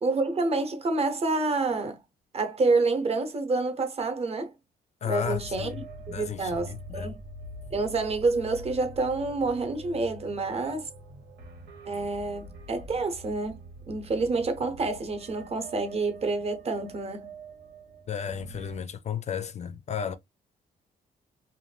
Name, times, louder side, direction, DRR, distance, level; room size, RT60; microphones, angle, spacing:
voice 1, 0.0-2.0 2.3-4.5 5.0-7.2 7.7-10.9 11.9-13.6 13.9-17.3, right 3 dB, 40° right, 0.7 m, -28 dB
voice 2, 5.0-7.2 18.1-20.2, left 8 dB, 45° left, 0.4 m, -34 dB
sound 1, 5.2-18.8, right 2 dB, 85° right, 1.0 m, -45 dB
2.5 x 2.2 x 3.2 m
cardioid pair, 120°, 17 cm